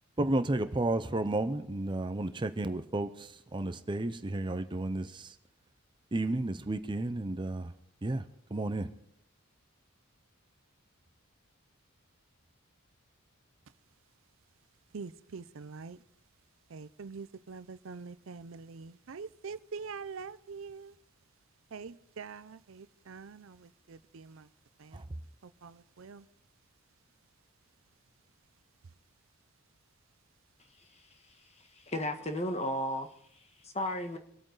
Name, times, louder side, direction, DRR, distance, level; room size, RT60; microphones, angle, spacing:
voice 1, 0.2-5.3 6.1-7.7 8.0-8.2 8.5-8.9 24.9-25.0, right 2 dB, 20° right, 0.6 m, -32 dB
voice 2, 14.9-16.0 16.7-20.9 21.7-22.6 23.1-23.4 24.1-24.2 25.6-25.7 26.0-26.2, right 5 dB, 65° right, 0.5 m, -43 dB
voice 3, 30.7-34.2, left 1 dB, 30° left, 1.4 m, -36 dB
26.0 x 8.9 x 4.0 m
head